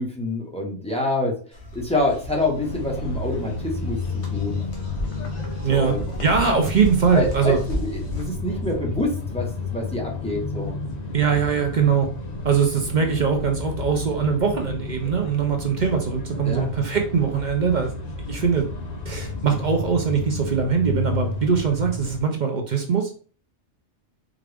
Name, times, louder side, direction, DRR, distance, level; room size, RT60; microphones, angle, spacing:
voice 1, 0.0-1.4 1.7-4.6 5.7-6.0 7.1-10.7 16.4-16.7, left 2 dB, 5° left, -2 dB, 0.9 m, -26 dB
sound 1, 1.5-8.3, equal, 70° left, 1.5 m, -34 dB
sound 2, 2.6-22.2, left 3 dB, 45° left, 0.7 m, -31 dB
voice 2, 5.6-5.9 6.2-7.6 11.1-12.1 12.4-17.9 18.2-18.7 19.1-23.1, right 6 dB, 50° right, 3 dB, 0.6 m, -22 dB
4.6 x 2.5 x 3.3 m, 0.42 s
omnidirectional pair, 1.2 m